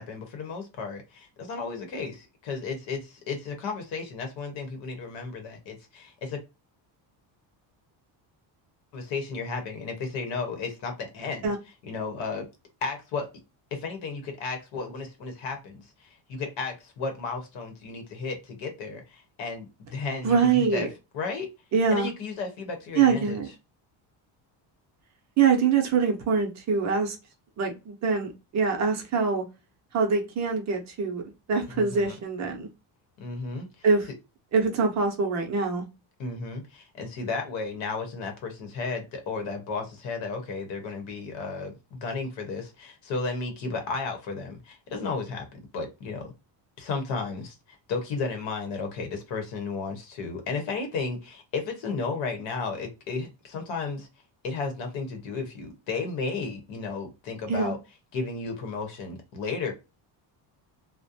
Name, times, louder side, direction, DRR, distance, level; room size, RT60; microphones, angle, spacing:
voice 1, 0.0-6.4 8.9-11.5 11.8-12.5 12.8-13.3 13.7-20.9 21.1-21.5 21.9-23.4 31.7-32.2 33.2-33.9 36.2-45.5 45.7-46.3 46.8-54.1 54.4-57.8 58.1-59.7, left 4 dB, 70° left, 5 dB, 0.9 m, -33 dB
voice 2, 20.2-20.9 21.7-22.1 23.0-23.5 25.4-27.2 27.6-29.4 29.9-31.2 31.5-32.7 33.8-34.1 34.5-35.8 57.5-57.7, right 5 dB, 35° right, 3 dB, 0.6 m, -24 dB
2.5 x 2.1 x 2.6 m, 0.27 s
cardioid pair, 170°, 47 cm